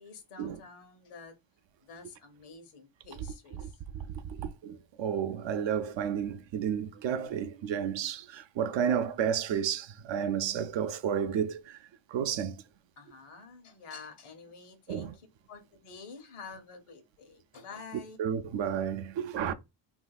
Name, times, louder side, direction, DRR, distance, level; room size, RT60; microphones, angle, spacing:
voice 1, 0.0-1.3 1.8-3.8 13.0-18.2, left 4 dB, 85° left, 1.0 m, -49 dB
voice 2, 3.9-11.8 12.1-12.6 14.9-15.1 18.2-19.5, right 8 dB, 65° right, 0.5 m, -31 dB
3.3 x 2.7 x 2.3 m
cardioid pair, 125°, 50 cm